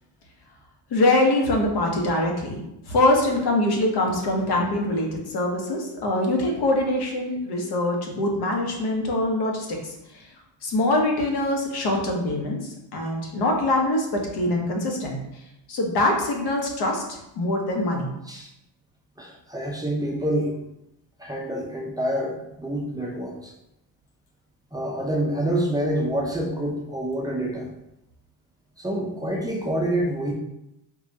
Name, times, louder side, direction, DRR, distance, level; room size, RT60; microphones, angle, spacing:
voice 1, 0.9-2.6 2.9-9.9 10.6-15.2 15.7-17.0 17.4-18.1, left 1 dB, 60° left, 1 dB, 1.1 m, -23 dB
voice 2, 19.2-20.5 21.2-23.5 24.7-27.7 28.8-30.3, right 1 dB, 10° right, -2 dB, 0.4 m, -27 dB
4.7 x 2.3 x 2.7 m, 0.86 s
cardioid pair, 100°, 45 cm